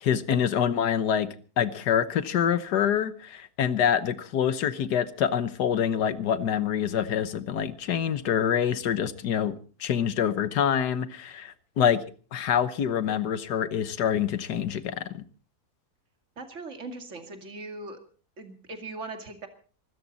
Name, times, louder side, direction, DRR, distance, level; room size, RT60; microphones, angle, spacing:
voice 1, 0.0-1.3 1.6-9.5 9.8-12.0 12.3-15.2, left 8 dB, 85° left, 1.7 m, -26 dB
voice 2, 16.4-18.0 18.4-19.5, right 3 dB, 45° right, 2.6 m, -39 dB
24.0 x 13.5 x 4.1 m
omnidirectional pair, 1.7 m